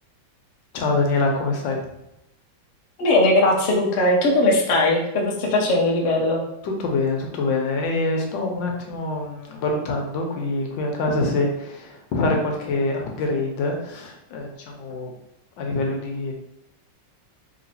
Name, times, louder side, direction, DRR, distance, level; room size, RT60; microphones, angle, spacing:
voice 1, 0.7-1.8 6.6-15.1 15.6-16.3, left 2 dB, 85° left, 1 dB, 1.4 m, -25 dB
voice 2, 3.0-6.4, left 2 dB, 60° left, -1 dB, 0.7 m, -19 dB
3.4 x 3.0 x 2.7 m, 0.83 s
omnidirectional pair, 2.0 m